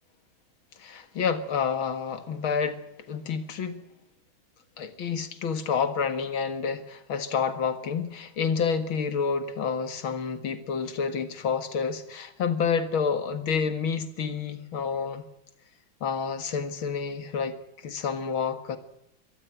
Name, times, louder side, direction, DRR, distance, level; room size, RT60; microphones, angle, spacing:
voice 1, 0.8-2.8 3.1-3.8 4.8-15.2 16.0-17.6 17.8-18.8, left 6 dB, 75° left, 2.6 m, -29 dB
24.0 x 14.5 x 9.1 m
omnidirectional pair, 2.3 m